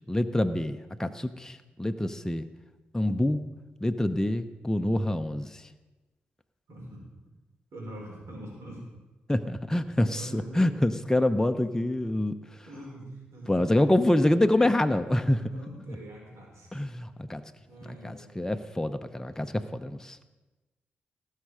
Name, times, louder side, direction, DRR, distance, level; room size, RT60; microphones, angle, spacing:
voice 1, 0.1-2.5 2.9-3.4 3.8-5.5 9.3-12.3 13.5-15.4 16.7-17.4 18.0-20.2, left 1 dB, 10° left, 8 dB, 0.8 m, -26 dB
voice 2, 6.7-7.0 7.7-8.8 10.1-10.8 12.6-13.5 15.3-16.8 17.2-17.4 17.7-18.4, right 1 dB, 70° right, -2 dB, 5.0 m, -44 dB
18.5 x 6.6 x 5.0 m, 1.1 s
hypercardioid pair, 40°, 5 cm